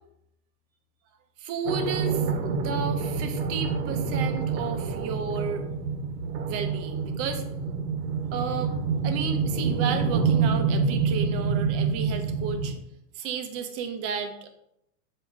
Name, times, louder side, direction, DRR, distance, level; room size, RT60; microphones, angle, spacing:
voice 1, 1.4-2.2 2.5-5.6 6.4-7.4 8.3-8.7 9.0-12.7 13.2-14.5, right 6 dB, 30° right, 6 dB, 0.7 m, -32 dB
sound 1, 1.7-12.8, right 5 dB, 85° right, 1.2 m, -27 dB
7.7 x 2.9 x 4.6 m, 0.79 s
supercardioid pair, 140°, 47 cm